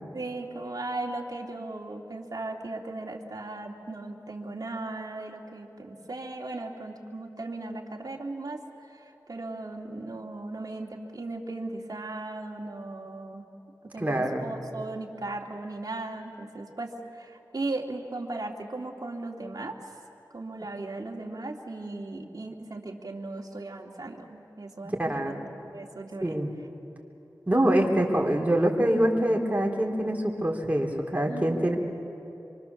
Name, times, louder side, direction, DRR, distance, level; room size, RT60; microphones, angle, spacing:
voice 1, 0.1-8.6 8.9-13.4 13.9-19.8 20.3-25.4 25.7-26.4 31.3-31.7, right 2 dB, 55° right, 0 dB, 2.5 m, -37 dB
voice 2, 14.0-14.4 24.8-25.4 26.2-26.5 27.5-31.8, right 1 dB, 20° right, 0 dB, 3.6 m, -25 dB
26.0 x 24.5 x 7.1 m, 2.9 s
wide cardioid pair, 45°, 7 cm